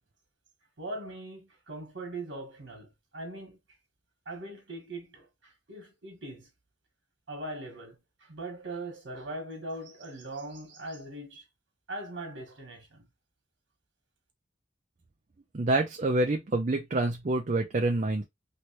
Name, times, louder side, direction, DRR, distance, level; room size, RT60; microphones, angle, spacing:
voice 1, 0.8-3.6 4.3-6.5 7.3-11.4 11.9-13.1, right 2 dB, 80° right, 1.2 m, -41 dB
voice 2, 15.5-18.2, right 2 dB, 40° right, 0.5 m, -27 dB
3.1 x 3.0 x 3.0 m
head